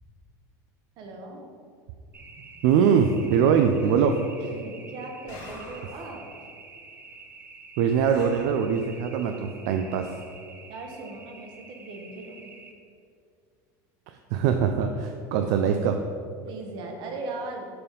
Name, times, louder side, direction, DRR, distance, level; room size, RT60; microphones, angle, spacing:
voice 1, 1.0-1.4 2.3-2.4 4.4-6.2 10.7-12.5 16.4-17.7, right 2 dB, 50° right, 2 dB, 1.1 m, -39 dB
sound 1, 2.1-12.7, right 3 dB, 20° right, 0.6 m, -48 dB
voice 2, 2.6-4.2 7.8-10.1 14.1-16.0, right 7 dB, 70° right, 6 dB, 0.4 m, -22 dB
sound 2, 3.8-4.2 5.3-6.0 8.0-8.6, left 1 dB, 70° left, 1.7 m, -45 dB
6.8 x 3.5 x 5.3 m, 2.3 s
supercardioid pair, 135°, 10 cm